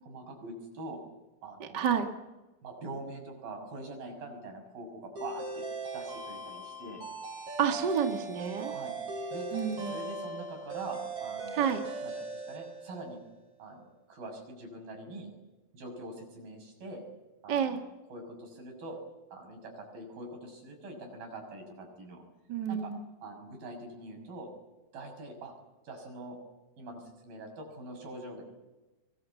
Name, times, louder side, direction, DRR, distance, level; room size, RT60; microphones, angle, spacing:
voice 1, 0.1-1.0 1.4-1.8 2.6-5.6 5.9-7.0 8.6-8.9 9.3-9.5 9.9-11.6 12.0-13.2 13.6-15.3 15.7-17.0 17.4-17.8 18.1-19.0 19.3-22.2 22.7-22.9 23.2-24.5 24.9-25.5 25.8-26.4 26.8-28.4, right 2 dB, 75° right, 3 dB, 8.1 m, -43 dB
voice 2, 1.6-2.1 7.6-8.7 9.5-10.0 11.5-11.8 17.5-17.8 22.5-23.0, right 7 dB, 35° right, 5 dB, 2.1 m, -29 dB
sound 1, 5.2-13.3, right 3 dB, 50° right, 8.8 m, -39 dB
23.5 x 21.0 x 8.4 m, 1.1 s
omnidirectional pair, 4.2 m